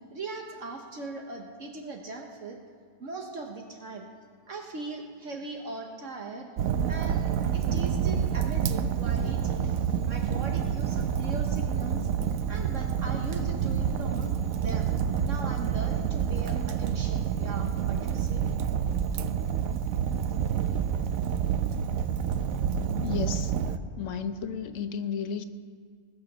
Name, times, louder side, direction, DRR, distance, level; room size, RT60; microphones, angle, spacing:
voice 1, 0.1-2.6 3.0-4.1 4.5-6.5 6.9-12.1 12.5-14.3 14.6-14.9 15.2-18.5, right 3 dB, 60° right, 2 dB, 1.4 m, -39 dB
Fire, 6.6-23.8, right 8 dB, 80° right, 1.1 m, -28 dB
voice 2, 23.0-23.5 24.0-25.4, left 6 dB, 65° left, 8 dB, 1.2 m, -33 dB
21.0 x 7.0 x 6.6 m, 2.2 s
omnidirectional pair, 1.5 m